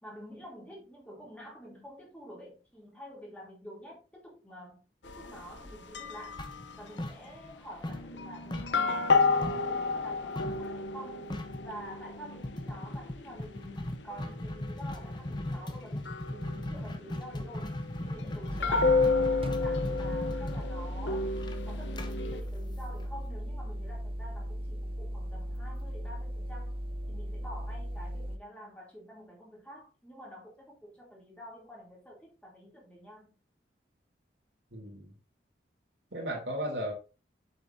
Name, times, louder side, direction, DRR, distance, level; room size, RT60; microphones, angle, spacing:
voice 1, 0.0-6.4 6.8-11.3 11.6-21.3 21.7-26.8 27.1-33.3, equal, 5° left, 2.9 m, -48 dB
sound 1, 5.0-7.0 7.9-22.4, left 4 dB, 80° left, 0.8 m, -32 dB
sound 2, 6.4-7.6 7.8-9.7 10.4-10.7 11.0-11.1 11.3-11.7 12.4-23.2, left 1 dB, 25° left, 0.8 m, -38 dB
sound 3, 18.5-28.4, equal, 30° right, 0.7 m, -37 dB
voice 2, 34.7-35.1 36.1-36.9, equal, 80° right, 3.0 m, -35 dB
7.9 x 6.9 x 2.7 m
head